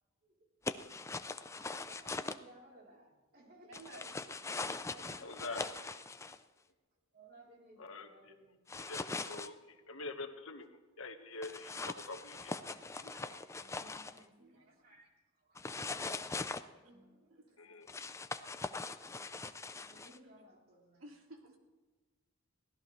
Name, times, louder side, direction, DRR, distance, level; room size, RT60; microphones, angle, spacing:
sound 1, 0.7-2.4 3.7-6.4 8.7-9.5 11.4-14.2 15.6-16.6 17.9-20.2, left 3 dB, 15° left, 0.4 m, -41 dB
voice 1, 1.6-4.2 4.5-5.8 7.1-8.7 12.5-13.0 13.6-15.1 15.4-15.6 16.8-17.8 19.7-21.0, right 1 dB, 45° right, -2 dB, 3.6 m, -61 dB
voice 2, 3.6-4.2 4.4-4.6 5.1-5.5 12.2-14.7 16.4-16.8 17.3-17.6 21.0-21.6, right 1 dB, 80° right, 2 dB, 2.3 m, -58 dB
voice 3, 5.2-5.7 7.8-8.1 8.8-10.7 11.0-12.5 17.6-17.9, left 3 dB, 80° left, 5 dB, 1.4 m, -45 dB
23.0 x 16.5 x 3.2 m, 1.3 s
head